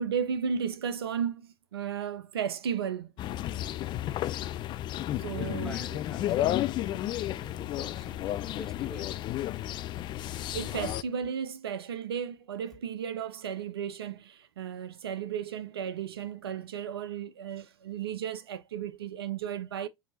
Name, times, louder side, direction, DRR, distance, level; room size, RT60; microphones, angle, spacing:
voice 1, 0.0-3.1 5.2-5.8 10.5-19.9, right 7 dB, 75° right, 0.5 m, -34 dB
sound 1, 3.2-11.0, left 13 dB, 35° left, 0.4 m, -32 dB
voice 2, 5.2-9.1, left 2 dB, 5° left, 1.7 m, -46 dB
5.9 x 2.7 x 2.7 m
figure-of-eight pair, 80°, 13 cm